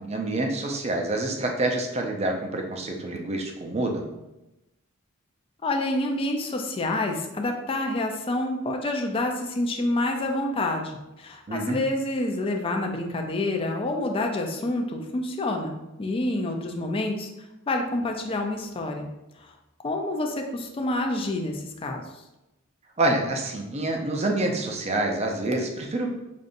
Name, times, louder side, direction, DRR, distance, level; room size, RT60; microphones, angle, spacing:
voice 1, 0.0-4.1 11.5-11.8 23.0-26.1, right 2 dB, 30° right, 2 dB, 0.5 m, -27 dB
voice 2, 5.6-17.3 17.7-19.1 19.4-19.5 19.8-22.0, left 2 dB, 25° left, 3 dB, 0.4 m, -28 dB
5.2 x 2.5 x 2.5 m, 0.96 s
head